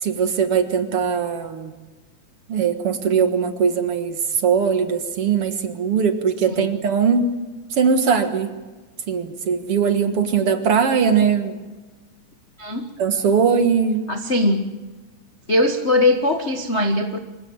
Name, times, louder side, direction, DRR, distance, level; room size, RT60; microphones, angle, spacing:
voice 1, 0.0-1.7 2.5-7.3 7.8-8.5 9.1-11.6 13.0-14.1, right 6 dB, 55° right, 8 dB, 2.1 m, -20 dB
voice 2, 14.1-14.7 15.5-17.2, left 2 dB, 50° left, 6 dB, 0.8 m, -20 dB
25.0 x 16.0 x 8.8 m, 1.3 s
omnidirectional pair, 3.7 m